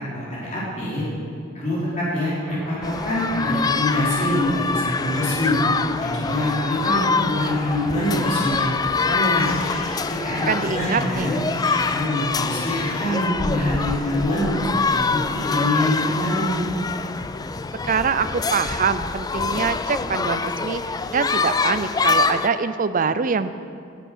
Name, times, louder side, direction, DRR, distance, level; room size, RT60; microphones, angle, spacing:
voice 1, 0.1-1.0 1.5-5.6 6.0-9.5 10.1-11.4 11.7-16.7, left 1 dB, 35° left, -8 dB, 3.9 m, -25 dB
sound 1, 2.4-10.7, equal, ahead, 2.6 m, -42 dB
sound 2, 2.8-22.5, left 4 dB, 20° left, 0.3 m, -25 dB
Crying sobbing, 6.8-13.3 13.6-14.2, left 2 dB, 75° left, 2.5 m, -40 dB
voice 2, 10.5-11.3 17.8-20.8 21.1-23.5, right 5 dB, 40° right, 12 dB, 0.5 m, -24 dB
17.5 x 8.1 x 6.2 m, 2.3 s
head